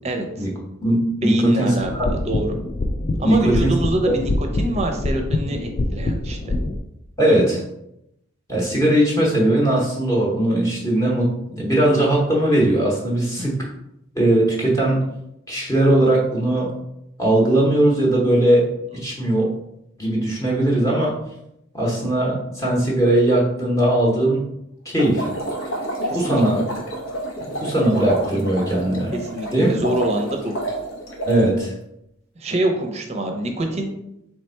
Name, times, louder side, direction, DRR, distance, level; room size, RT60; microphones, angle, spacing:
voice 1, 0.0-0.5 1.2-2.6 3.2-4.3 4.6-6.5 13.4-13.5 18.9-19.0 26.1-26.4 29.1-30.5 32.4-33.9, right 1 dB, 30° right, 4 dB, 0.6 m, -25 dB
voice 2, 0.8-2.1 3.2-3.7 4.1-4.2 7.2-7.6 8.5-11.3 11.6-13.6 14.1-15.0 15.5-16.7 17.2-19.5 20.0-21.2 21.7-24.4 24.8-25.3 26.1-26.6 27.4-29.1 29.5-29.7 31.3-31.7, right 1 dB, 15° left, -4 dB, 0.9 m, -19 dB
sound 1, 1.8-6.8, left 2 dB, 35° left, 0.3 m, -25 dB
sound 2, 25.0-31.5, right 1 dB, 80° left, 1.0 m, -29 dB
3.4 x 3.3 x 4.3 m, 0.81 s
head